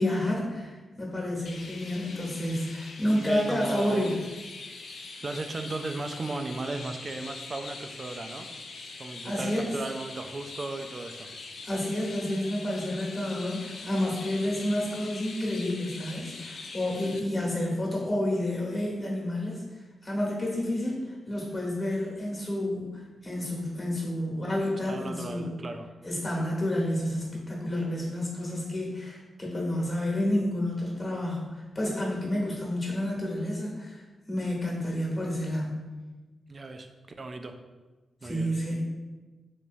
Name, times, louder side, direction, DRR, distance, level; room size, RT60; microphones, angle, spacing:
voice 1, 0.0-4.2 9.2-9.7 11.6-19.6 20.0-22.9 23.2-25.6 26.0-34.0 34.3-35.9 38.2-38.8, left 1 dB, 30° left, -3 dB, 1.2 m, -30 dB
Chirp tweet, 1.5-17.2, left 3 dB, 75° left, 0.4 m, -43 dB
voice 2, 3.2-4.2 5.2-8.5 9.0-11.3 24.8-25.9 36.5-36.9 37.2-37.6 38.2-38.5, right 2 dB, 45° right, 6 dB, 0.3 m, -36 dB
3.4 x 2.9 x 2.6 m, 1.2 s
cardioid pair, 60°, 0 cm